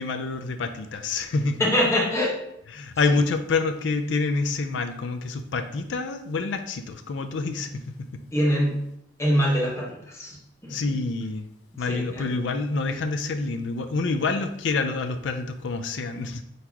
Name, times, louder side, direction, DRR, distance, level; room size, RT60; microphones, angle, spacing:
voice 1, 0.0-1.6 2.7-7.8 10.7-11.5 11.8-16.4, left 3 dB, 75° left, 7 dB, 0.4 m, -27 dB
voice 2, 1.6-2.4 3.1-3.2 8.3-8.9 9.2-10.4 10.6-10.9 11.8-12.4, equal, 15° left, -3 dB, 1.0 m, -24 dB
4.0 x 2.9 x 4.6 m, 0.76 s
head